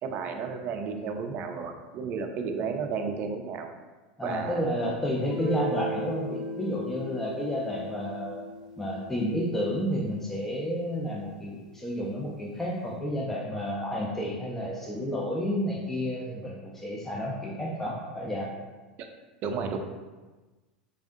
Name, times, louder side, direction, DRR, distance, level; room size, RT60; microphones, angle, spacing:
voice 1, 0.0-3.7 4.2-4.6 19.0-19.1 19.4-19.8, right 5 dB, 40° right, 5 dB, 0.5 m, -32 dB
voice 2, 4.2-8.4 8.8-18.5, equal, 5° left, -4 dB, 0.5 m, -31 dB
Guitar, 5.2-10.7, right 1 dB, 20° right, 0.9 m, -37 dB
3.5 x 3.4 x 2.6 m, 1.2 s
figure-of-eight pair, 85°, 4 cm